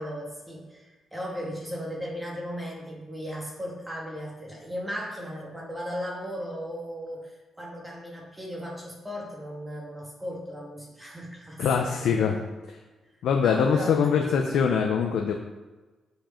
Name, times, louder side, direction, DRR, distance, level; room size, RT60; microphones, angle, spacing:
voice 1, 0.0-12.3 13.4-14.1 14.4-14.5, equal, 10° right, -2 dB, 2.1 m, -36 dB
voice 2, 11.6-12.3 13.2-15.3, left 6 dB, 85° left, 2 dB, 0.7 m, -23 dB
9.2 x 5.1 x 4.4 m, 1.2 s
cardioid pair, 110°, 0 cm